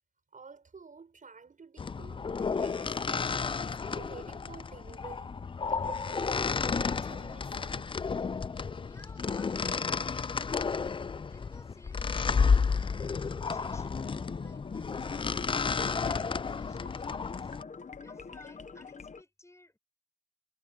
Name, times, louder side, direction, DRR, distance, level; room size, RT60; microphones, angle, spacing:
voice 1, 0.3-5.4 5.7-7.9, right 4 dB, 85° right, 6.0 m, -50 dB
sound 1, 1.8-17.6, left 5 dB, 40° left, 0.3 m, -32 dB
voice 2, 8.8-10.5 11.2-15.4 15.8-17.5 18.0-19.8, left 1 dB, 20° left, 5.6 m, -58 dB
sound 2, 13.9-19.2, left 5 dB, 65° left, 1.0 m, -42 dB
wide cardioid pair, 70°, 13 cm